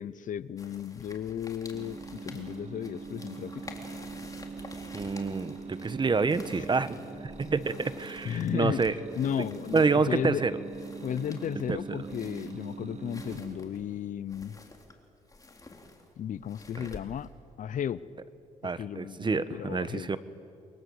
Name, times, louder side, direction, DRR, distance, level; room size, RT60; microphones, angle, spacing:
voice 1, 0.0-3.5 8.2-8.8 9.2-10.4 11.0-14.6 16.2-17.3 17.6-18.0 18.8-20.1, left 9 dB, 60° left, 18 dB, 0.8 m, -34 dB
sound 1, 0.6-17.4, left 2 dB, 25° left, 3.7 m, -50 dB
sound 2, 1.7-14.1, right 5 dB, 50° right, 2.1 m, -43 dB
voice 2, 4.9-7.0 7.2-8.9 9.4-9.5 9.7-10.5 11.7-12.1 16.8-16.9 18.6-20.2, right 4 dB, 30° right, 13 dB, 1.4 m, -28 dB
30.0 x 23.5 x 8.1 m, 2.5 s
cardioid pair, 75°, 15 cm